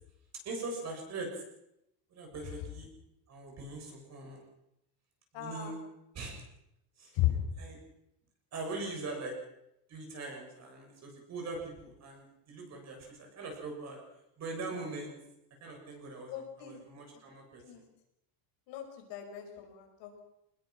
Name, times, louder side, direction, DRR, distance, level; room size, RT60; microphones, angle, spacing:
voice 1, 0.4-1.4 2.1-2.9 3.3-4.4 5.3-5.8 6.1-6.4 7.0-7.2 7.6-7.8 8.5-9.4 9.9-14.0 14.4-15.2 15.6-16.3 16.6-17.6, right 3 dB, 35° right, 1 dB, 7.4 m, -41 dB
voice 2, 5.3-5.7 7.1-7.4 16.3-16.8 17.6-17.8 18.7-20.2, left 13 dB, 60° left, 3 dB, 5.6 m, -35 dB
25.0 x 20.5 x 6.1 m, 0.82 s
cardioid pair, 170°, 48 cm